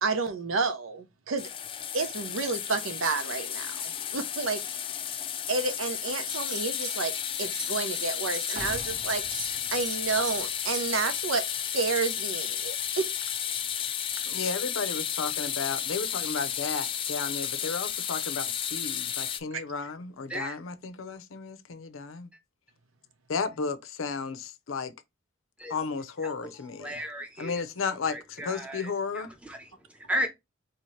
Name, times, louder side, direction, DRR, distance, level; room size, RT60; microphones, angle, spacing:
voice 1, 0.0-1.5 1.9-4.6 5.5-11.5 11.7-13.1 19.5-19.6, right 4 dB, 90° right, 0.7 m, -30 dB
sound 1, 1.4-19.4, left 9 dB, 25° left, 0.3 m, -33 dB
sound 2, 6.1-7.0 7.2-11.1, right 4 dB, 65° right, 1.1 m, -41 dB
sound 3, 8.6-12.3 12.7-12.8, right 2 dB, 40° right, 0.7 m, -47 dB
voice 2, 14.3-22.3 23.3-24.9 25.7-27.0 27.4-29.3, left 5 dB, 80° left, 0.6 m, -33 dB
voice 3, 26.2-30.3, equal, 5° right, 0.8 m, -36 dB
4.3 x 2.8 x 3.1 m
head